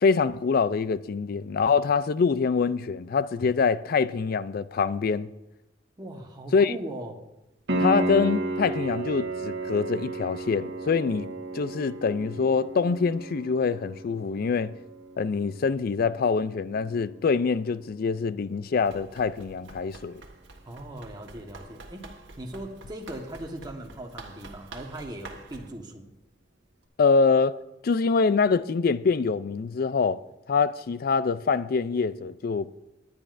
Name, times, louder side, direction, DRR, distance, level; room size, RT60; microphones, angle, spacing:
voice 1, 0.0-5.3 6.5-6.8 7.8-11.3 11.5-14.7 15.2-20.2 27.0-27.6 27.8-30.2 30.5-32.7, left 5 dB, 55° left, 0.4 m, -25 dB
voice 2, 6.0-7.2 20.6-22.0 22.4-26.1, right 1 dB, 25° right, 1.3 m, -39 dB
Piano, 7.7-18.3 21.6-21.7, right 2 dB, 65° right, 1.4 m, -34 dB
Run, 18.8-25.7, right 2 dB, 80° right, 1.4 m, -47 dB
19.5 x 9.5 x 2.6 m
head